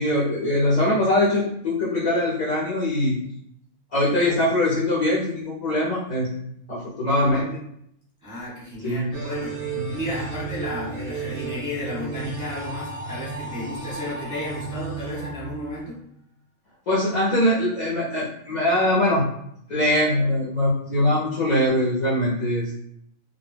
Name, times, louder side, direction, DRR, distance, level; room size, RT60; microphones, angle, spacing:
voice 1, 0.0-3.1 3.9-6.3 6.7-7.5 8.8-9.2 9.7-10.0 16.9-19.3 19.7-22.8, left 1 dB, 55° left, -7 dB, 0.5 m, -22 dB
voice 2, 8.2-16.0, left 1 dB, 15° left, -7 dB, 0.9 m, -33 dB
sound 1, 9.1-16.1, right 4 dB, 55° right, 0.6 m, -34 dB
2.2 x 2.0 x 3.2 m, 0.73 s
omnidirectional pair, 1.4 m